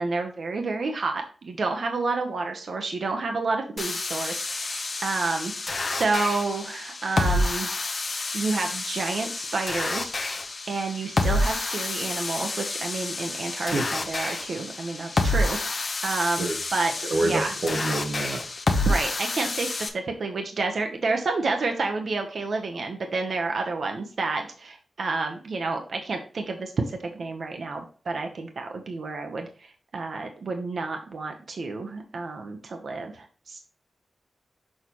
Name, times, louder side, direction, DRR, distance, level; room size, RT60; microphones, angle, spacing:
voice 1, 0.0-5.5 5.9-7.7 8.3-10.3 10.7-17.5 18.8-33.6, right 3 dB, 55° right, 3 dB, 0.9 m, -30 dB
sound 1, 3.8-19.9, left 2 dB, 40° left, 0.8 m, -29 dB
voice 2, 17.1-18.4, right 2 dB, 85° right, 4 dB, 1.2 m, -26 dB
6.4 x 5.5 x 3.0 m, 0.40 s
wide cardioid pair, 180°, 0 cm